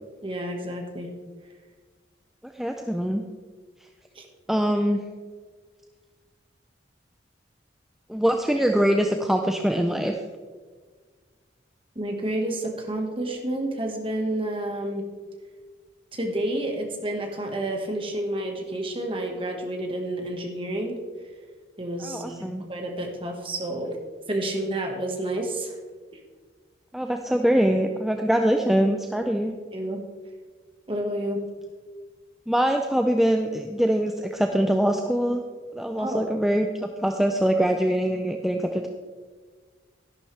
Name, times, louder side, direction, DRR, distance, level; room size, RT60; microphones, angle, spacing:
voice 1, 0.2-1.1 4.1-4.2 11.9-15.0 16.1-21.0 21.8-24.0 24.3-25.8 29.7-30.0 30.9-31.4 36.0-36.3, right 1 dB, 30° right, 2 dB, 1.6 m, -30 dB
voice 2, 2.4-3.2 4.5-5.0 8.1-10.1 22.0-22.6 26.9-29.5 32.5-35.4 35.7-38.9, equal, ahead, 3 dB, 0.5 m, -23 dB
12.0 x 11.0 x 3.4 m, 1.5 s
head